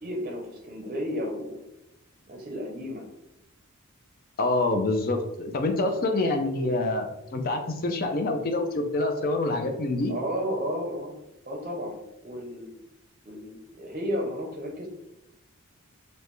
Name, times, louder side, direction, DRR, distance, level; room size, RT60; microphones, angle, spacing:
voice 1, 0.0-1.6 2.3-3.1 10.1-11.1 11.5-12.8 13.3-14.9, equal, 35° right, -1 dB, 0.6 m, -33 dB
voice 2, 4.4-10.1, left 2 dB, 40° left, 4 dB, 0.5 m, -26 dB
5.3 x 2.2 x 3.0 m, 0.88 s
head